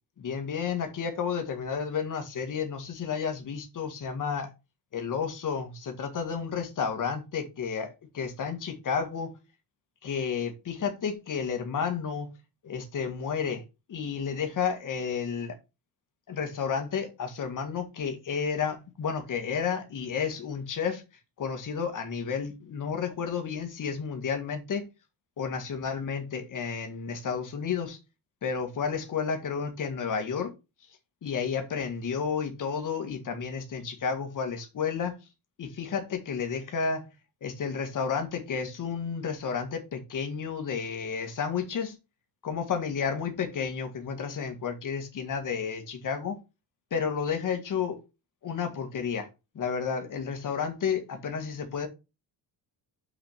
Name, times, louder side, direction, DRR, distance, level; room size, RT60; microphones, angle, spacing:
voice 1, 0.2-4.5 4.9-9.4 10.0-12.3 12.6-13.6 13.9-15.6 16.3-21.0 21.4-24.9 25.4-28.0 28.4-30.5 31.2-35.2 35.6-37.1 37.4-42.0 42.4-46.4 46.9-48.0 48.4-49.3 49.6-51.9, left 6 dB, 45° left, 2.0 m, -31 dB
6.0 x 5.0 x 5.9 m
cardioid pair, 150°, 42 cm